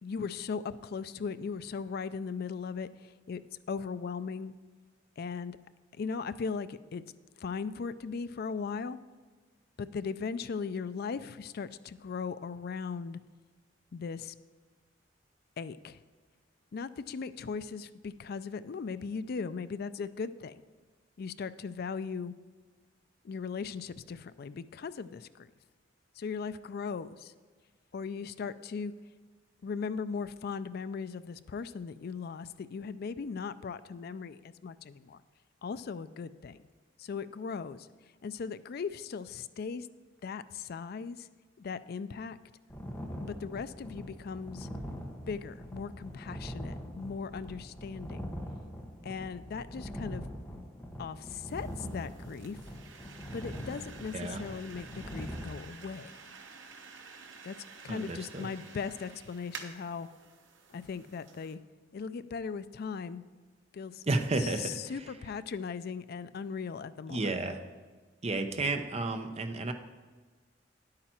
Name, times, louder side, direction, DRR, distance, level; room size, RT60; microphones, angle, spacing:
voice 1, 0.0-3.4 3.7-4.5 5.2-5.6 6.0-7.0 7.4-9.0 9.8-13.2 13.9-14.3 15.6-16.0 16.7-20.6 21.2-22.3 23.2-25.5 26.2-27.3 27.9-28.9 29.6-35.2 35.6-36.6 37.0-37.9 38.2-39.9 40.2-41.3 41.6-42.4 43.2-44.7 45.3-48.3 49.0-50.3 51.0-52.6 53.3-56.2 57.4-57.6 57.8-60.1 60.7-61.6 61.9-63.2 63.7-64.0 64.4-67.4, left 5 dB, 55° left, 14 dB, 0.4 m, -38 dB
sound 1, 42.7-55.4, equal, 10° left, 1.2 m, -42 dB
sound 2, 51.5-61.5, right 5 dB, 80° right, 1.0 m, -51 dB
voice 2, 57.9-58.5 64.1-64.8 67.1-67.6 68.2-69.7, right 2 dB, 35° right, 7 dB, 0.7 m, -32 dB
10.0 x 8.7 x 4.4 m, 1.4 s
head